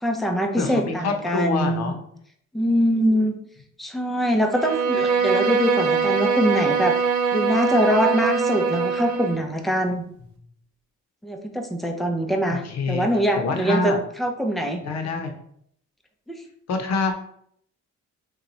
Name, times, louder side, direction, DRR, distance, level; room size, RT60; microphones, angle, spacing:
voice 1, 0.0-1.9 2.5-3.4 3.8-6.9 7.3-10.0 11.2-13.9 14.2-14.8 16.3-16.4, equal, ahead, 3 dB, 0.5 m, -23 dB
voice 2, 0.6-2.0 12.5-13.1 13.4-14.0 14.8-15.3 16.7-17.2, left 4 dB, 60° left, 5 dB, 0.7 m, -26 dB
Bowed string instrument, 4.5-9.4, right 5 dB, 85° right, 0.5 m, -22 dB
3.0 x 2.3 x 3.8 m, 0.67 s
cardioid pair, 90°, 30 cm